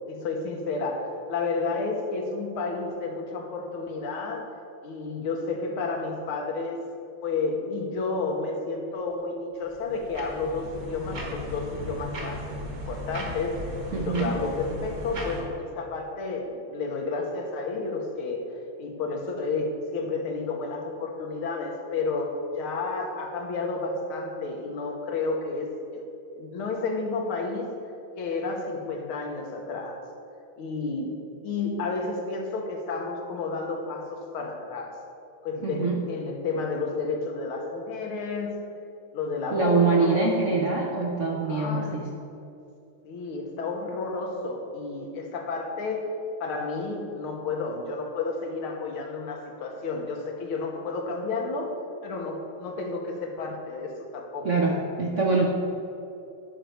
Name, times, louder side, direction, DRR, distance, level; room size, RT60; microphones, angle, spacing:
voice 1, 0.1-4.5 4.8-6.9 7.2-18.5 18.8-26.1 26.3-27.7 28.2-30.0 30.6-31.2 31.4-35.0 35.4-38.6 39.1-40.3 41.5-42.0 43.0-46.1 46.4-51.8 52.0-54.7, left 3 dB, 85° left, 2 dB, 1.9 m, -31 dB
sound 1, 9.6-15.4, left 1 dB, 45° right, 1.8 m, -36 dB
voice 2, 13.9-14.3 35.6-36.0 39.5-42.1 54.4-55.5, right 3 dB, 60° right, -1 dB, 0.7 m, -24 dB
11.0 x 4.5 x 6.4 m, 2.7 s
omnidirectional pair, 2.3 m